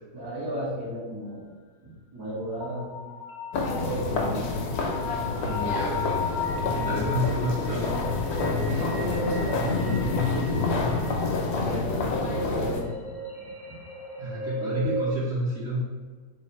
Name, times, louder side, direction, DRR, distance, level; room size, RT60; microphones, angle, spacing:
voice 1, 0.1-1.5 1.8-3.0 3.7-4.8 8.5-13.0 13.4-13.8, equal, 70° right, -9 dB, 1.9 m, -35 dB
sound 1, 2.6-15.1, left 3 dB, 55° left, 0.5 m, -36 dB
sound 2, 3.5-12.8, left 3 dB, 75° left, 1.1 m, -28 dB
voice 2, 5.4-6.2 6.6-7.9 14.2-15.9, equal, 50° right, -8 dB, 1.0 m, -30 dB
4.1 x 2.6 x 4.1 m, 1.5 s
omnidirectional pair, 1.7 m